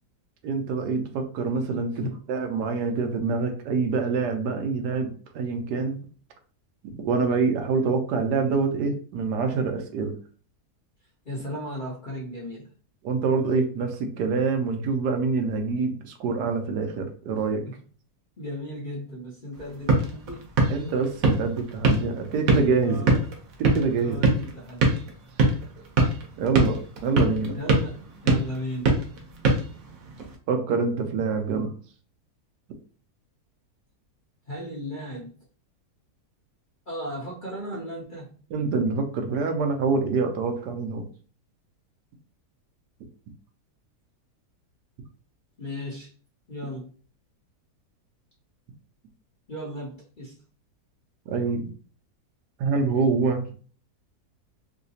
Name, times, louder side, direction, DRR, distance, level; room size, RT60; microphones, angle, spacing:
voice 1, 0.4-6.0 6.8-10.1 13.0-17.6 20.7-23.2 23.6-24.2 26.4-27.6 30.5-31.7 38.5-41.0 51.3-51.7 52.6-53.5, right 4 dB, 85° right, 5 dB, 1.3 m, -26 dB
voice 2, 11.3-12.7 17.6-17.7 18.4-20.5 22.8-23.2 24.0-25.0 27.6-29.0 34.5-35.4 36.9-38.4 45.6-46.1 46.5-46.9 49.5-50.4, equal, 45° left, -4 dB, 0.6 m, -35 dB
sound 1, 19.5-30.4, right 2 dB, 60° right, 1.1 m, -25 dB
3.3 x 2.8 x 2.7 m, 0.42 s
omnidirectional pair, 1.7 m